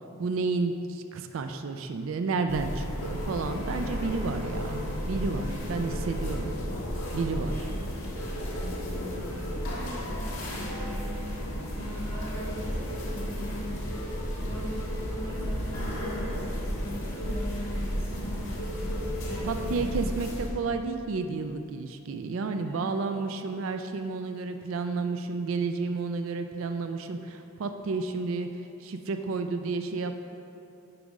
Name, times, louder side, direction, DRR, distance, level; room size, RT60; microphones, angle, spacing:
voice 1, 0.2-6.5 7.1-7.7 19.5-28.5 28.8-30.2, right 4 dB, 70° right, 7 dB, 0.4 m, -31 dB
sound 1, 2.5-20.5, equal, 75° left, 1.5 m, -33 dB
voice 2, 7.6-8.0 9.7-20.2 22.6-22.9, equal, 45° right, -8 dB, 1.3 m, -41 dB
6.9 x 4.9 x 5.2 m, 2.8 s
head